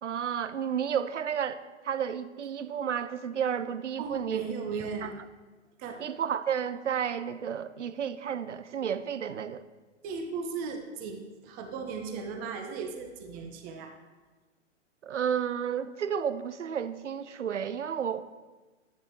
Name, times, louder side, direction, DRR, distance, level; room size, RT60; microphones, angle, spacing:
voice 1, 0.0-1.6 1.8-5.1 6.0-9.6 15.0-18.3, right 8 dB, 70° right, 13 dB, 0.7 m, -32 dB
voice 2, 4.0-5.1 5.8-6.0 10.0-13.9, right 5 dB, 25° right, 4 dB, 1.1 m, -36 dB
12.0 x 10.0 x 3.1 m, 1.2 s
figure-of-eight pair, 115°, 37 cm